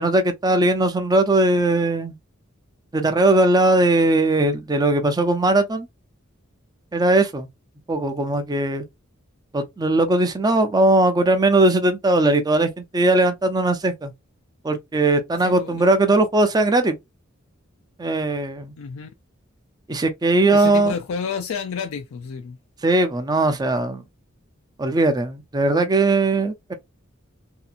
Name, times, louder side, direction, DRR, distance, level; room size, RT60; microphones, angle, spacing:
voice 1, 0.0-2.2 2.9-5.9 6.9-7.5 7.9-8.8 9.5-14.1 14.6-17.0 18.0-18.7 19.9-20.9 22.8-24.0 24.8-26.7, right 2 dB, 20° right, 0.4 m, -19 dB
voice 2, 15.4-15.9 18.8-19.1 20.5-22.6, left 6 dB, 85° left, 0.4 m, -30 dB
2.8 x 2.4 x 2.4 m
head